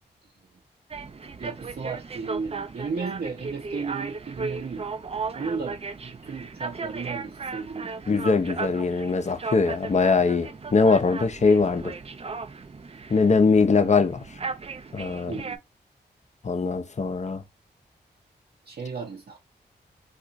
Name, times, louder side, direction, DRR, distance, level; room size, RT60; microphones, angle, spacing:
sound 1, 0.9-15.6, right 4 dB, 35° right, 0.5 m, -36 dB
voice 1, 1.4-4.9 5.4-8.0 15.3-15.6 18.7-19.4, right 5 dB, 60° right, 0.8 m, -34 dB
voice 2, 8.1-11.9 13.1-14.2 14.9-15.3 16.4-17.4, left 4 dB, 40° left, 0.6 m, -22 dB
2.4 x 2.4 x 4.0 m
cardioid pair, 45°, 18 cm